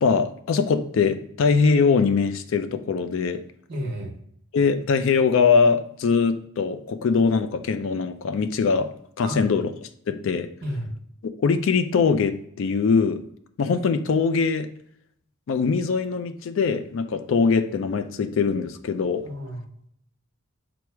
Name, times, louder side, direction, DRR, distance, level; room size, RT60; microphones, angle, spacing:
voice 1, 0.0-3.4 4.5-8.9 9.2-9.6 10.1-10.5 11.4-13.2 13.6-14.7 15.5-19.3, left 5 dB, 60° left, 9 dB, 0.3 m, -22 dB
voice 2, 3.7-4.2 9.2-9.5 10.6-10.9 19.2-19.7, equal, 50° right, 1 dB, 0.9 m, -32 dB
4.6 x 2.0 x 4.4 m, 0.69 s
head